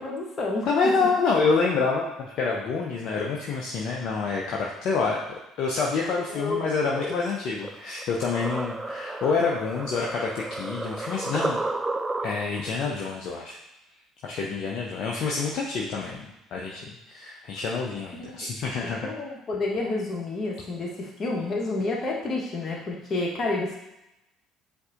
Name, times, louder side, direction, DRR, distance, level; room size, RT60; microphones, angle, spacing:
voice 1, 0.0-0.7 6.3-6.6 6.9-7.2 18.2-18.5 19.0-23.8, left 2 dB, 35° left, -2 dB, 1.1 m, -30 dB
voice 2, 0.7-5.2 5.6-11.6 12.2-13.6 14.2-16.3 16.5-19.1, left 4 dB, 55° left, -2 dB, 0.6 m, -27 dB
sound 1, 7.6-12.7, right 2 dB, 15° right, 0.3 m, -32 dB
7.8 x 2.7 x 2.5 m, 0.91 s
figure-of-eight pair, 55°, 0 cm